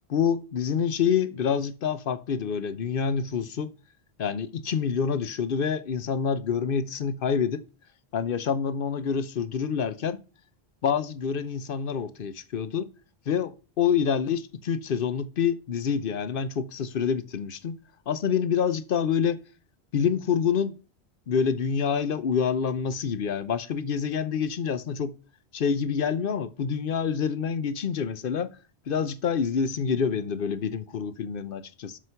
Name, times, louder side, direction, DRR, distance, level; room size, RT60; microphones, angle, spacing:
voice 1, 0.1-3.7 4.2-7.6 8.1-10.2 10.8-12.9 13.3-17.8 18.1-19.4 19.9-20.7 21.3-25.1 25.5-28.5 28.9-32.0, left 7 dB, 60° left, 0.9 m, -27 dB
7.9 x 6.0 x 5.7 m
omnidirectional pair, 1.1 m